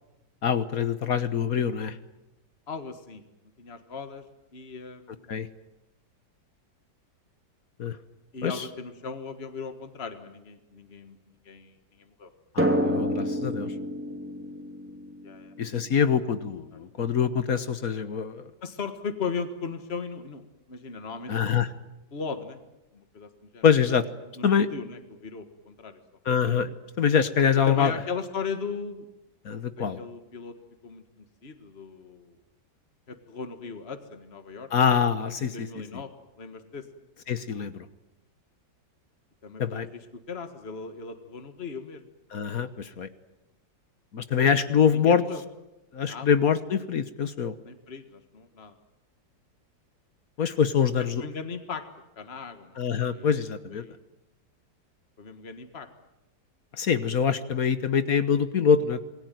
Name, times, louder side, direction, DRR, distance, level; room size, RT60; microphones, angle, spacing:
voice 1, 0.4-2.0 5.3-5.5 7.8-8.0 8.4-8.7 12.5-13.7 15.6-18.5 21.3-21.7 23.6-24.0 24.4-24.7 26.2-27.9 29.4-30.0 34.7-35.8 37.3-37.9 39.6-39.9 42.3-43.1 44.1-45.2 45.9-47.5 50.4-51.2 52.8-53.8 56.7-59.0, left 7 dB, 55° left, 12 dB, 1.6 m, -24 dB
voice 2, 2.7-3.2 3.6-4.2 4.5-5.5 8.3-11.2 11.5-12.3 15.2-15.5 18.6-21.3 22.1-22.6 22.9-23.6 24.4-26.0 27.7-29.1 29.8-30.5 30.8-31.0 31.4-32.4 33.1-34.7 35.4-36.1 36.4-36.9 39.4-40.0 40.3-42.0 44.9-45.4 46.0-46.3 47.6-48.7 51.0-51.8 52.2-52.8 53.1-53.3 53.7-54.0 55.2-55.9, left 5 dB, 35° left, 8 dB, 2.0 m, -37 dB
Drum, 12.6-15.9, equal, 5° right, 2.9 m, -28 dB
27.5 x 21.0 x 9.2 m, 0.96 s
omnidirectional pair, 1.9 m